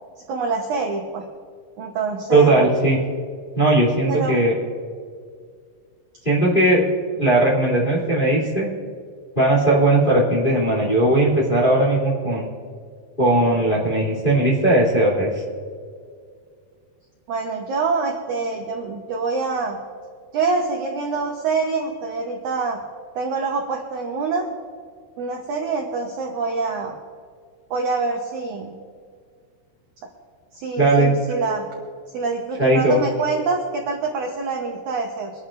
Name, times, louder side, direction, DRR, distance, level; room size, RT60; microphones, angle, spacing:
voice 1, 0.3-1.3 1.8-2.6 4.1-4.4 17.3-19.8 20.3-22.8 23.2-24.5 25.2-27.0 27.7-28.8 30.5-31.7 32.1-35.3, right 4 dB, 65° right, 2 dB, 2.0 m, -25 dB
voice 2, 2.3-3.0 3.6-4.5 6.2-6.8 7.2-8.7 9.3-12.5 13.2-15.4 30.8-31.1 32.6-33.0, right 2 dB, 15° left, -5 dB, 2.6 m, -18 dB
24.5 x 11.5 x 2.6 m, 2.1 s
omnidirectional pair, 4.7 m